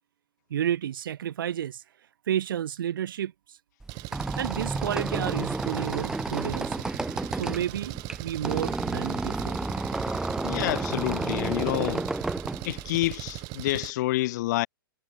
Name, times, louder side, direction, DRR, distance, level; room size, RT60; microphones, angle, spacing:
voice 1, 0.5-1.8 2.3-3.6 4.4-6.8 7.3-8.0 8.2-9.6, right 10 dB, 65° right, 0.7 m, -31 dB
Squeak, 3.8-13.4, right 2 dB, 5° right, 1.5 m, -31 dB
Engine, 3.9-13.9, right 25 dB, 35° right, 0.6 m, -38 dB
voice 2, 10.4-12.1 12.6-14.7, left 17 dB, 50° left, 2.2 m, -28 dB
hypercardioid pair, 115°, 12 cm